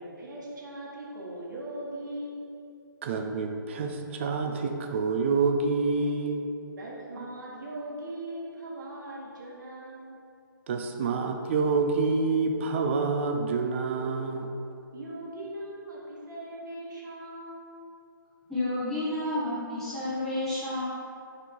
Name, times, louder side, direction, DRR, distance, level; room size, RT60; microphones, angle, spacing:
voice 1, 0.0-2.7 6.8-10.2 14.9-17.8, right 1 dB, 55° right, -4 dB, 1.4 m, -40 dB
voice 2, 3.0-6.5 10.7-14.5, right 4 dB, 35° right, 5 dB, 0.5 m, -27 dB
voice 3, 18.5-20.8, left 1 dB, 5° left, -12 dB, 1.0 m, -30 dB
5.4 x 4.0 x 4.5 m, 2.6 s
hypercardioid pair, 155°, 12 cm